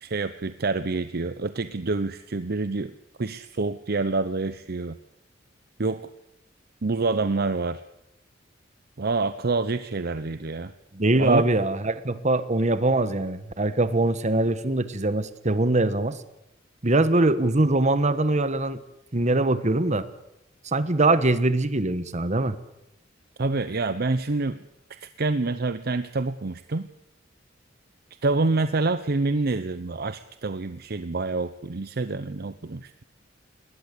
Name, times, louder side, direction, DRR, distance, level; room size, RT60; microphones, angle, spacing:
voice 1, 0.0-2.9 3.2-5.0 5.8-6.0 6.8-7.8 9.0-10.7 11.2-11.5 23.4-24.6 25.0-26.9 28.2-32.9, right 3 dB, 55° right, 13 dB, 0.7 m, -27 dB
voice 2, 10.9-16.2 16.8-18.8 19.1-20.1 20.6-22.6, right 2 dB, 40° right, 13 dB, 1.4 m, -22 dB
21.0 x 19.0 x 8.4 m, 0.84 s
head